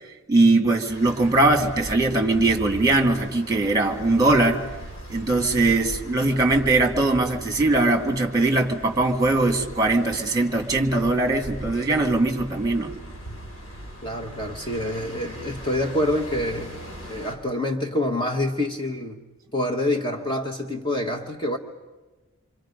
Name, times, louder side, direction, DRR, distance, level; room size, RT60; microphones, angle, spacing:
voice 1, 0.3-4.6 5.1-12.9, right 2 dB, 20° right, 2.2 m, -21 dB
sound 1, 0.9-17.4, right 1 dB, 70° left, 6.0 m, -39 dB
voice 2, 14.0-16.8 17.1-19.2 19.5-21.6, left 1 dB, 25° left, 1.2 m, -26 dB
28.0 x 25.0 x 5.2 m
head